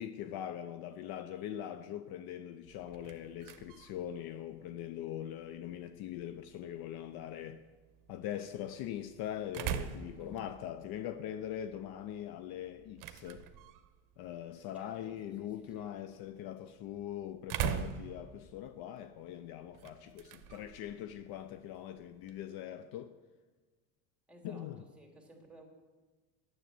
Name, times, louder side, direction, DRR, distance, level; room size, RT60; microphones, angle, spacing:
voice 1, 0.0-7.6 8.1-13.5 14.2-23.1 24.4-24.8, left 11 dB, 60° left, 0.7 m, -42 dB
wooden door opening and closing, 2.6-22.5, right 9 dB, 50° right, 0.9 m, -45 dB
voice 2, 10.1-10.5 14.7-15.9 24.3-25.7, right 1 dB, 5° right, 2.7 m, -56 dB
9.3 x 7.6 x 7.6 m
supercardioid pair, 95°, 42 cm